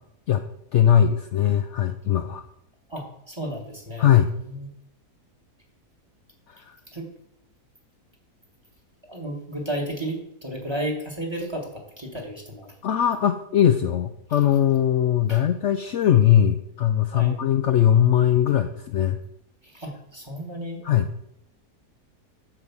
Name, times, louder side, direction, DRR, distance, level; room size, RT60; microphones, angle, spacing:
voice 1, 0.7-2.4 4.0-4.3 6.5-6.6 12.8-19.2 20.8-21.1, left 10 dB, 75° left, 8 dB, 0.6 m, -20 dB
voice 2, 2.9-4.7 6.9-7.1 9.1-11.7 12.0-12.7 15.3-15.4 17.1-17.4 19.7-20.8, right 1 dB, 15° right, 0 dB, 1.5 m, -33 dB
8.1 x 5.2 x 7.1 m, 0.77 s
omnidirectional pair, 1.7 m